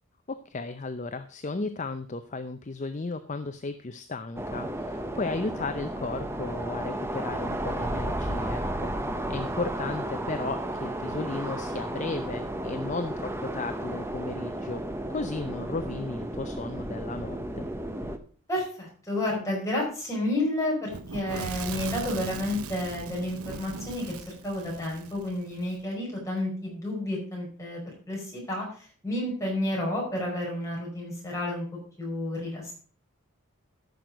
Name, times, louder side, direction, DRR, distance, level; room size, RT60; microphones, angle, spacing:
voice 1, 0.5-8.9 9.3-14.8 15.1-17.7, left 3 dB, 35° left, 10 dB, 0.5 m, -35 dB
sound 1, 4.4-18.2, right 1 dB, 10° right, 0.7 m, -33 dB
voice 2, 18.5-24.1 24.4-27.8 28.1-31.7 32.0-32.7, left 1 dB, 15° left, -3 dB, 5.2 m, -31 dB
Fire / Explosion, 20.9-25.7, right 4 dB, 80° right, 0.8 m, -39 dB
14.0 x 6.1 x 5.1 m, 0.43 s
head